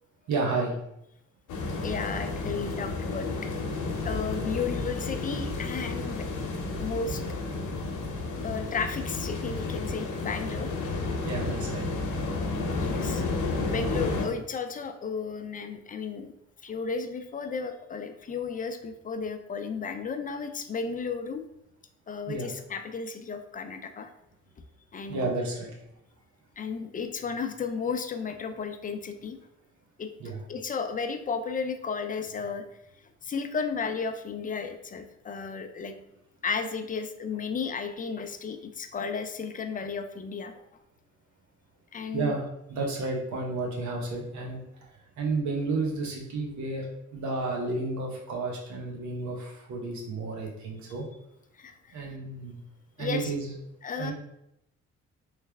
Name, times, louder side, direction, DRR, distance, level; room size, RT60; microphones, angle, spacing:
voice 1, 0.3-0.7 11.2-11.9 22.3-22.5 25.1-25.7 30.2-30.4 42.1-44.6 45.2-46.9 47.1-51.0 51.9-52.6 53.0-53.5 54.0-54.1, right 3 dB, 70° right, -1 dB, 1.2 m, -31 dB
sound 1, 1.5-14.3, left 3 dB, 85° left, 0.8 m, -31 dB
voice 2, 1.8-3.3 4.0-6.3 6.8-7.2 8.4-10.7 12.8-13.2 13.7-16.3 16.6-21.4 22.1-24.1 24.9-25.3 26.6-29.4 30.0-30.1 30.5-32.7 33.2-35.9 36.4-40.6 41.9-42.4 51.6-51.7 53.0-53.3 53.8-54.1, left 5 dB, 30° left, 8 dB, 0.4 m, -33 dB
3.2 x 3.1 x 3.4 m, 0.81 s
cardioid pair, 90°, 30 cm